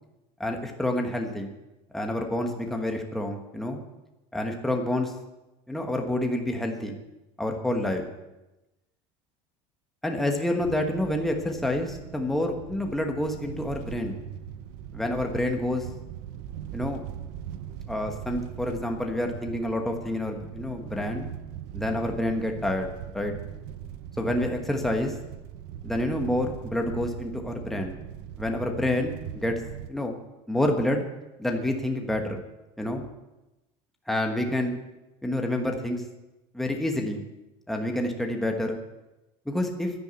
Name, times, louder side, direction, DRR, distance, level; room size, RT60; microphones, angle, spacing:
voice 1, 0.4-1.5 1.9-3.8 4.3-5.1 5.7-7.0 7.4-8.0 10.0-14.2 14.9-15.9 16.7-17.0 17.9-21.3 21.7-22.9 23.1-23.3 24.2-25.1 25.8-27.9 28.4-29.6 29.9-30.1 30.5-31.0 31.4-32.4 32.8-33.0 34.1-34.7 35.2-36.0 36.5-37.2 37.7-38.8 39.5-39.9, left 1 dB, ahead, 2 dB, 1.3 m, -28 dB
sound 1, 10.6-29.9, right 10 dB, 65° right, 0.9 m, -40 dB
11.0 x 10.0 x 8.2 m, 0.99 s
cardioid pair, 170°, 13 cm